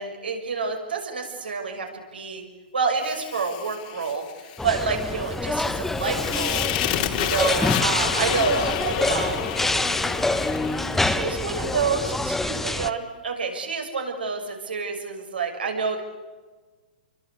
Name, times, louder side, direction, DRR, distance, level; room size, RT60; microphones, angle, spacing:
voice 1, 0.0-2.4 2.7-6.6 7.2-9.4 11.0-16.0, right 5 dB, 85° right, 3 dB, 6.6 m, -28 dB
Fire, 3.0-12.2, left 12 dB, 55° left, 2.7 m, -31 dB
sound 1, 4.6-12.9, left 2 dB, 5° left, 1.2 m, -26 dB
29.0 x 23.5 x 8.5 m, 1.4 s
hypercardioid pair, 120°, 5 cm